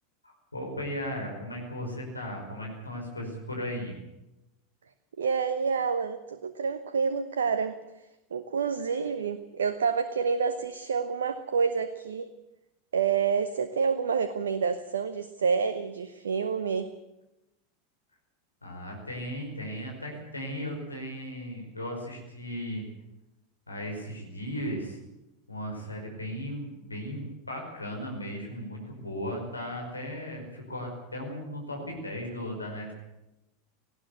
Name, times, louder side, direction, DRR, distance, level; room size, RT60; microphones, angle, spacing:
voice 1, 0.2-3.9 18.6-22.8 23.7-25.0 25.5-32.9, equal, 85° left, 1 dB, 5.4 m, -36 dB
voice 2, 5.2-7.8 8.3-12.3 12.9-16.9, right 6 dB, 70° right, 10 dB, 1.0 m, -28 dB
19.0 x 16.0 x 9.7 m, 0.94 s
figure-of-eight pair, 85°, 0 cm